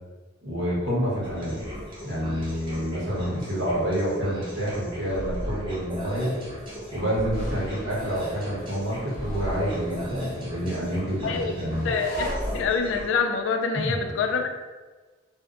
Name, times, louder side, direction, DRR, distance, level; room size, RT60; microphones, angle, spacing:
voice 1, 0.4-1.6 2.0-6.4 6.9-11.9 13.7-14.0, equal, 80° right, -7 dB, 1.0 m, -28 dB
sound 1, 1.2-13.0, equal, 25° right, 0.6 m, -36 dB
sound 2, 7.3-12.3, right 1 dB, 50° left, 0.8 m, -40 dB
voice 2, 11.8-14.5, left 5 dB, 75° left, 5 dB, 0.3 m, -26 dB
2.6 x 2.0 x 2.4 m, 1.3 s
head